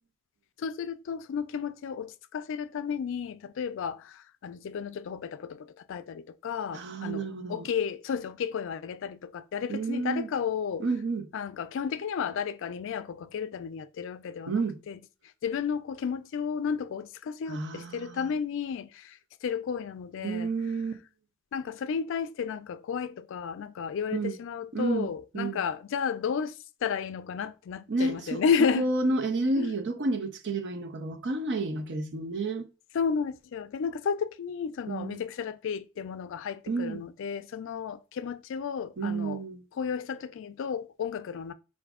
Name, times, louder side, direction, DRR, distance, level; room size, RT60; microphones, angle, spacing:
voice 1, 0.6-10.9 11.3-15.0 15.4-20.5 21.5-28.9 29.6-29.8 32.9-39.4 39.7-41.5, left 6 dB, 65° left, 0.3 m, -32 dB
voice 2, 6.7-7.7 9.7-10.3 10.8-11.3 14.5-14.8 17.5-18.3 20.2-21.0 24.1-24.3 24.7-25.6 27.9-28.4 28.8-32.7 34.9-35.2 36.7-37.0 39.0-39.6, right 3 dB, 60° right, 0.6 m, -30 dB
4.9 x 2.6 x 3.5 m
head